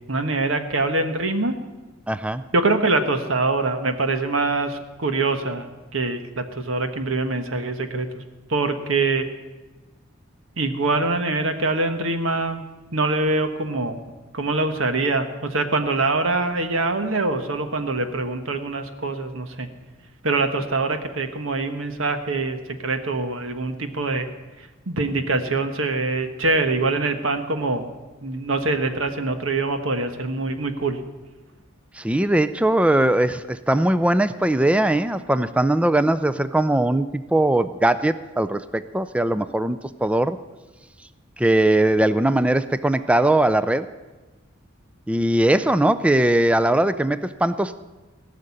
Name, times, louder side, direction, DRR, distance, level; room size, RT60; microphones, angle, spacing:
voice 1, 0.1-1.6 2.5-8.2 8.5-9.3 10.6-12.6 12.9-14.0 14.3-19.7 20.2-24.3 24.9-27.9 28.2-31.0, right 3 dB, 80° right, 7 dB, 1.3 m, -24 dB
voice 2, 2.1-2.4 31.9-40.4 41.4-43.9 45.1-47.8, right 1 dB, 5° right, 12 dB, 0.4 m, -20 dB
18.0 x 6.6 x 9.8 m, 1.2 s
head